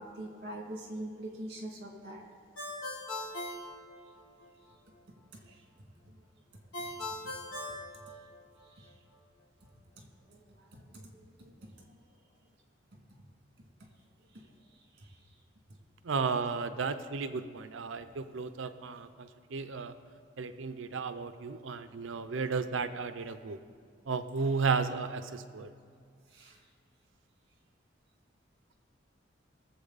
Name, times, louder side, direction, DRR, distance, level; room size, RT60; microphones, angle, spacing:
voice 1, 0.0-2.2 10.3-10.4 10.7-11.1 11.4-11.5 26.3-26.5, right 1 dB, 55° right, 0 dB, 2.4 m, -42 dB
Ringtone, 2.6-4.5 6.7-8.7, left 2 dB, 90° left, 2.1 m, -40 dB
voice 2, 16.0-19.9 20.4-23.6 24.1-25.7, right 5 dB, 90° right, 11 dB, 0.6 m, -34 dB
20.5 x 7.5 x 4.0 m, 2.2 s
head